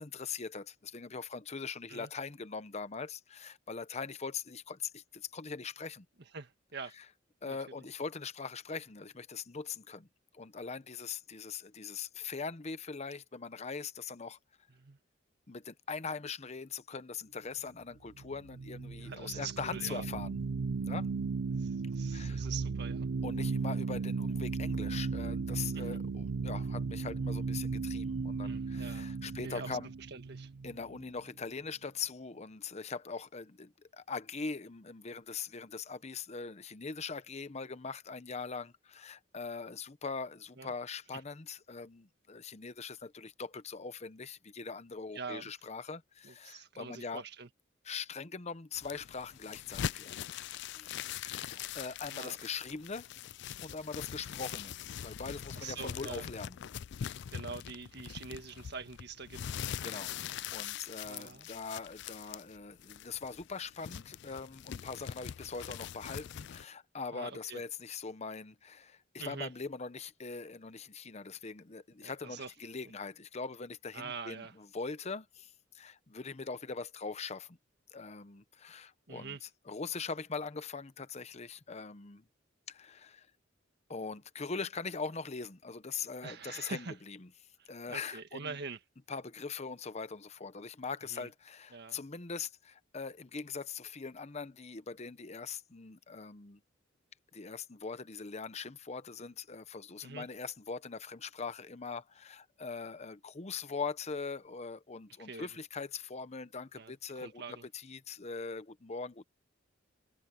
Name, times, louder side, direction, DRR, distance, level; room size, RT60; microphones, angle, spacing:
voice 1, 0.0-6.1 6.9-7.1 7.4-10.1 10.3-14.4 15.5-20.4 20.8-21.1 22.1-22.5 23.2-29.9 30.6-47.2 47.8-50.2 50.7-53.1 53.6-54.7 55.0-56.6 59.8-60.1 60.5-77.6 77.9-82.2 82.7-83.3 83.9-87.3 87.7-88.6 89.1-96.6 97.3-109.2, left 5 dB, 35° left, 0.8 m, -42 dB
voice 2, 6.3-6.9 7.4-7.6 14.8-15.0 19.0-20.0 21.6-23.1 25.7-25.8 28.4-29.7 30.1-30.5 40.6-40.7 45.1-45.5 46.2-47.5 52.0-52.4 55.6-56.3 57.3-59.4 61.0-61.5 67.1-67.6 69.2-69.5 72.0-72.5 73.9-74.5 79.1-79.4 86.2-86.9 87.9-88.8 91.1-91.3 91.7-92.0 100.0-100.3 105.2-105.5 106.8-107.7, right 5 dB, 60° right, 1.7 m, -44 dB
sound 1, 18.1-31.3, right 4 dB, 80° right, 0.5 m, -36 dB
sound 2, 48.7-66.6, left 9 dB, 60° left, 0.4 m, -42 dB
head